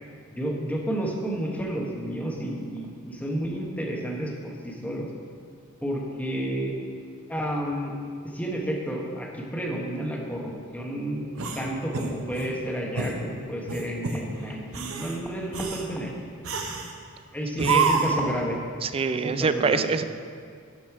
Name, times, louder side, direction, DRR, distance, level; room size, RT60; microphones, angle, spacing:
voice 1, 0.3-5.1 5.8-6.8 7.3-7.9 8.3-11.3 11.5-16.1 17.3-18.6 19.1-19.9, right 1 dB, 5° left, -1 dB, 1.1 m, -31 dB
sound 1, 11.4-12.5 13.0-13.2 13.7-14.2 14.7-15.2 15.5-15.9 16.4-16.9 17.6-18.2, right 4 dB, 80° right, 0.9 m, -27 dB
voice 2, 17.6-18.0 18.8-20.0, right 5 dB, 25° right, 11 dB, 0.3 m, -25 dB
11.5 x 5.3 x 4.6 m, 2.2 s
head